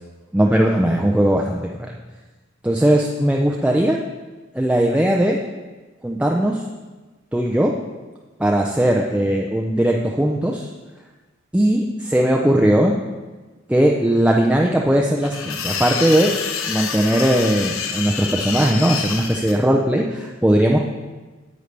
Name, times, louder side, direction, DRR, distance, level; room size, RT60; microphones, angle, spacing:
voice 1, 0.3-1.9 2.6-4.0 4.5-5.4 6.0-6.6 7.3-7.7 8.4-10.7 11.5-13.0 13.7-16.3 16.7-20.8, right 1 dB, 5° right, 0 dB, 0.4 m, -18 dB
sound 1, 15.2-19.5, left 6 dB, 85° left, 0.8 m, -27 dB
10.0 x 8.0 x 3.3 m, 1.3 s
head